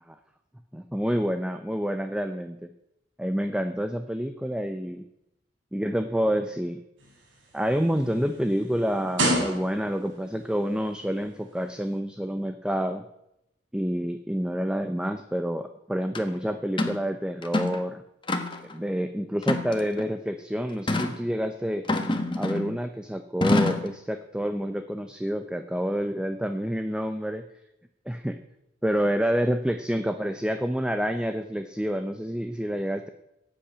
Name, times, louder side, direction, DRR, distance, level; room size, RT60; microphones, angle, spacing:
voice 1, 0.7-2.7 3.2-5.0 5.7-6.8 7.5-13.0 13.7-18.0 18.7-21.8 22.4-27.4 28.1-28.3 28.8-33.1, equal, 5° right, 8 dB, 0.6 m, -28 dB
sound 1, 7.0-10.1 11.0-11.1, right 1 dB, 85° right, 4.5 m, -29 dB
sound 2, 16.1-16.2 16.8-17.0 17.4-17.8 18.3-18.7 19.4-20.1 20.9-21.2 21.9-22.7 23.4-23.9, left 2 dB, 25° left, 1.4 m, -26 dB
15.5 x 8.7 x 8.6 m, 0.87 s
head